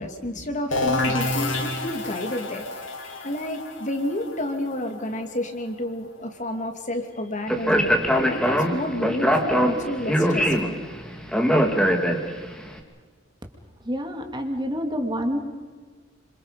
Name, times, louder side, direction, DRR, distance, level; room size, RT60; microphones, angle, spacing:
voice 1, 0.0-10.8, left 1 dB, 40° left, 5 dB, 2.8 m, -30 dB
sound 1, 0.7-6.3, left 2 dB, 80° left, 3.6 m, -29 dB
Speech, 7.5-12.5, equal, 5° left, 2.6 m, -22 dB
voice 2, 13.8-15.4, equal, 25° right, 4 dB, 2.5 m, -27 dB
27.5 x 27.0 x 5.3 m, 1.5 s
head